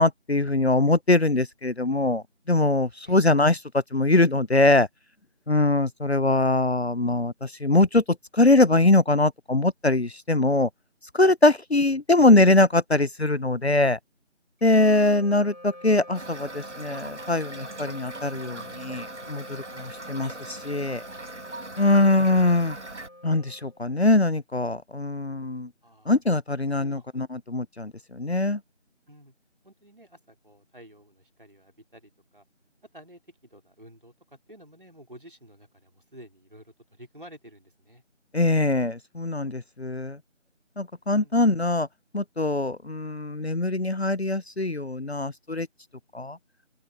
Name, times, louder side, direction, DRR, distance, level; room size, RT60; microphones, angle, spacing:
voice 1, 0.0-4.9 5.5-8.0 8.3-10.7 11.1-14.0 14.6-21.0 21.8-22.8 23.2-25.7 26.1-28.6 38.3-40.2 40.8-41.9 42.1-45.7 46.1-46.4, left 2 dB, 60° left, 0.7 m, -22 dB
Wind instrument woodwind instrument, 14.6-24.2, left 1 dB, 35° left, 7.4 m, -46 dB
Toilet flush / Fill (with liquid), 16.1-23.1, right 2 dB, 65° right, 1.3 m, -40 dB
voice 2, 26.7-27.1 29.1-29.3 29.6-32.4 32.9-38.0 41.1-41.7, equal, 45° right, 3.7 m, -51 dB
open air
figure-of-eight pair, 175°, 37 cm